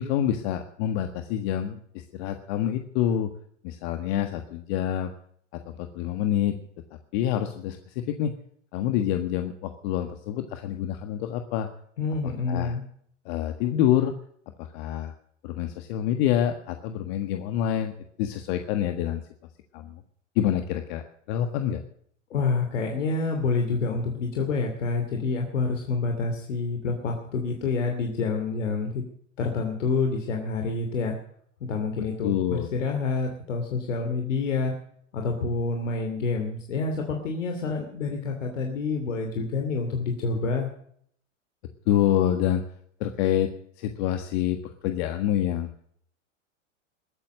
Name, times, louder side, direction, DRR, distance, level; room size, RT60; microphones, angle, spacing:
voice 1, 0.0-3.3 3.6-5.1 5.5-6.6 7.1-8.3 8.7-11.7 12.5-12.8 13.2-14.1 14.6-15.1 15.4-19.2 19.7-20.0 20.3-21.8 32.2-32.7 41.9-42.6 43.0-45.7, left 11 dB, 55° left, 7 dB, 1.6 m, -27 dB
voice 2, 12.0-12.8 22.3-29.0 29.4-31.2 31.6-34.7 35.1-40.7, left 4 dB, 75° left, 3 dB, 2.8 m, -28 dB
22.0 x 9.0 x 6.4 m, 0.64 s
hypercardioid pair, 95°, 37 cm